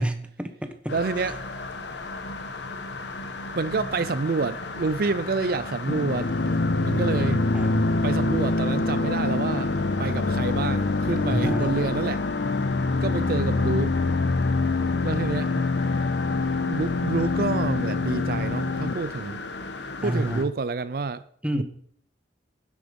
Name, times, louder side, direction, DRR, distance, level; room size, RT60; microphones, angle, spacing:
voice 1, 0.0-0.9 7.5-8.1 11.3-11.7 20.0-20.5 21.4-21.6, right 1 dB, 5° right, 1.1 m, -29 dB
sound 1, 0.9-20.4, left 3 dB, 80° left, 1.3 m, -36 dB
voice 2, 0.9-1.4 3.5-6.3 6.8-7.4 8.0-12.2 13.0-14.0 15.0-15.6 16.7-19.4 20.0-21.2 21.5-21.6, right 4 dB, 55° right, 0.5 m, -28 dB
sound 2, 5.9-18.9, left 3 dB, 60° left, 0.6 m, -25 dB
12.0 x 9.9 x 5.3 m
head